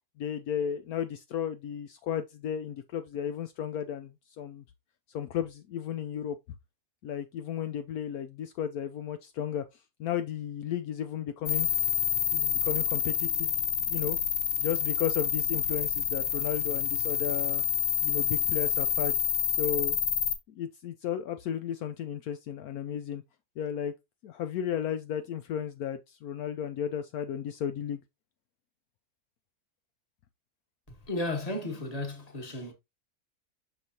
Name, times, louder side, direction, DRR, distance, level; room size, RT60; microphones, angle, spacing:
voice 1, 0.2-4.6 5.1-6.4 7.0-9.6 10.0-11.7 12.3-14.2 14.6-17.6 18.0-19.2 19.6-20.0 20.5-23.2 23.6-23.9 24.2-28.0, left 9 dB, 75° left, 1.0 m, -34 dB
sound 1, 11.5-20.3, left 8 dB, 55° left, 1.3 m, -28 dB
voice 2, 31.1-32.7, left 2 dB, 25° left, 1.4 m, -34 dB
6.3 x 5.3 x 2.8 m
omnidirectional pair, 1.7 m